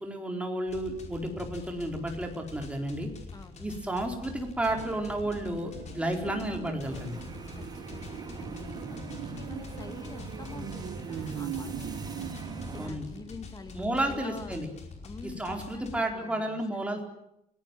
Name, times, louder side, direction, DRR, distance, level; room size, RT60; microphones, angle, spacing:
voice 1, 0.0-3.1 3.6-7.2 12.8-13.1 13.7-14.7 15.2-17.0, right 1 dB, 5° right, 2 dB, 4.3 m, -32 dB
sound 1, 0.7-16.0, left 4 dB, 40° left, 5.1 m, -46 dB
voice 2, 3.3-3.9 7.6-14.6 15.0-16.6 16.9-17.0, left 3 dB, 25° left, 8 dB, 2.2 m, -47 dB
sound 2, 4.7-13.8 14.1-14.2, right 11 dB, 75° right, 1.6 m, -42 dB
sound 3, 6.8-12.9, right 2 dB, 25° right, 3.4 m, -42 dB
29.5 x 18.0 x 9.1 m, 0.80 s
cardioid pair, 175°, 17 cm